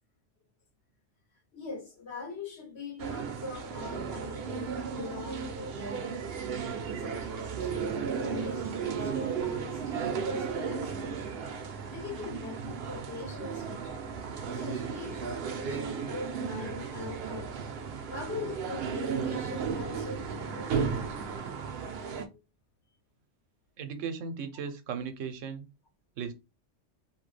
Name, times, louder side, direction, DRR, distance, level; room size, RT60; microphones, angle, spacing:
voice 1, 1.5-6.3 7.0-11.3 11.9-14.0 14.5-17.5 18.1-20.7 21.3-21.4 22.3-22.4, left 4 dB, 60° left, 1.5 m, -42 dB
sound 1, 3.0-22.3, right 6 dB, 60° right, 0.7 m, -34 dB
voice 2, 23.8-25.7 26.2-26.3, right 6 dB, 85° right, 1.0 m, -36 dB
3.0 x 2.2 x 3.2 m
omnidirectional pair, 1.3 m